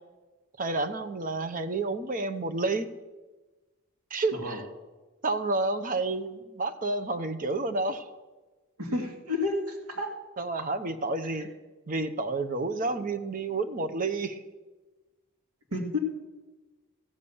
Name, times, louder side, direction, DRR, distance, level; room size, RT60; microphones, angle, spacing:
voice 1, 0.6-2.9 4.1-4.6 5.2-8.1 10.4-11.5 11.9-14.4, right 3 dB, 40° right, 8 dB, 0.7 m, -30 dB
voice 2, 8.8-10.1 11.4-11.5 15.7-16.0, left 2 dB, 85° right, 2 dB, 2.0 m, -31 dB
15.0 x 6.9 x 7.0 m, 1.2 s
head